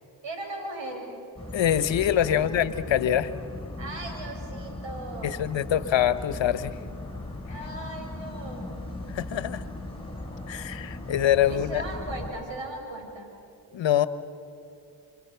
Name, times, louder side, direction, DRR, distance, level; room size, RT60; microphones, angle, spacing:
voice 1, 0.2-1.1 2.3-2.4 3.8-5.4 7.5-8.7 11.5-13.3, right 2 dB, 65° right, 3 dB, 6.7 m, -38 dB
sound 1, 1.4-12.3, left 2 dB, 10° left, 7.3 m, -38 dB
voice 2, 1.5-3.3 5.2-6.7 9.1-9.6 10.5-11.8 13.7-14.1, left 10 dB, 70° left, 14 dB, 1.3 m, -24 dB
28.5 x 24.5 x 7.0 m, 2.6 s
supercardioid pair, 50°, 47 cm